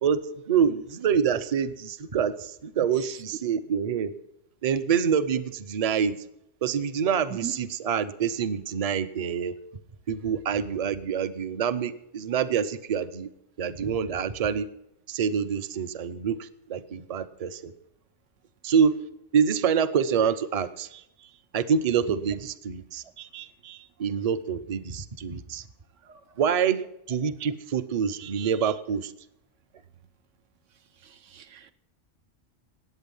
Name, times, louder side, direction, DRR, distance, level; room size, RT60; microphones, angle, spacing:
voice 1, 0.0-4.1 4.6-6.2 6.6-9.6 10.1-13.3 13.6-14.7 15.1-17.7 18.6-19.0 19.3-25.6 26.4-29.1, right 7 dB, 35° right, 12 dB, 0.7 m, -26 dB
voice 2, 31.0-31.7, right 10 dB, 75° right, 10 dB, 1.2 m, -40 dB
19.0 x 8.3 x 5.5 m, 0.79 s
omnidirectional pair, 1.3 m